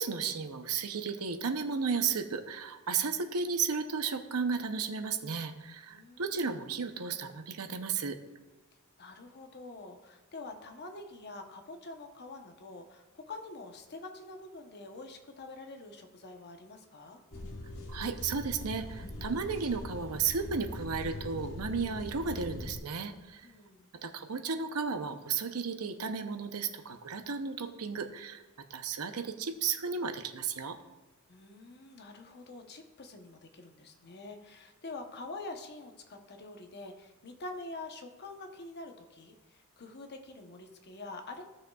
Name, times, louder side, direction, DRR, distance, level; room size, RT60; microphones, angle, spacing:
voice 1, 0.0-8.2 17.9-23.5 24.0-28.4 28.7-30.8, right 5 dB, 85° right, 7 dB, 0.8 m, -34 dB
voice 2, 5.9-6.5 9.0-17.2 23.4-23.9 31.3-41.4, left 2 dB, 50° left, 5 dB, 0.9 m, -46 dB
sound 1, 17.3-22.8, left 1 dB, 65° left, 1.3 m, -42 dB
15.5 x 6.5 x 2.4 m, 1.1 s
head